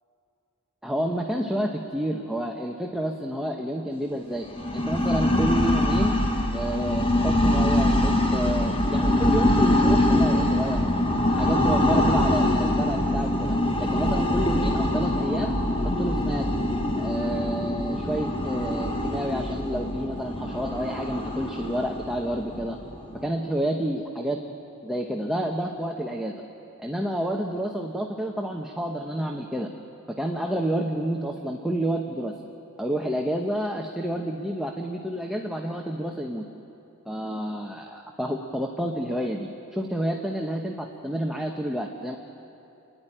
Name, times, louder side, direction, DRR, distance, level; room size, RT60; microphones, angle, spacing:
voice 1, 0.8-4.5 4.7-6.2 6.5-10.9 11.3-16.5 17.0-22.8 23.2-24.5 24.8-26.3 26.8-29.7 30.2-32.4 32.8-36.4 37.1-42.2, right 1 dB, ahead, 1 dB, 0.9 m, -29 dB
sound 1, 4.5-23.2, left 1 dB, 25° left, 1.4 m, -24 dB
28.0 x 11.0 x 10.0 m, 2.8 s
head